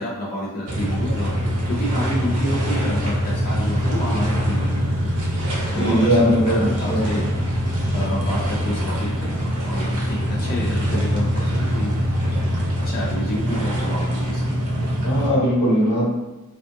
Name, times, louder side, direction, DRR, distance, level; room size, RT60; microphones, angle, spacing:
voice 1, 0.0-1.3 1.7-5.1 5.7-7.2 7.9-9.0 9.2-9.3 9.6-11.9 12.8-14.4, equal, 40° left, -5 dB, 0.4 m, -29 dB
sound 1, 0.7-15.3, equal, 85° right, 0.7 m, -23 dB
voice 2, 5.7-7.3 15.0-16.1, equal, 85° left, -7 dB, 1.1 m, -20 dB
2.5 x 2.3 x 2.6 m, 1.1 s
head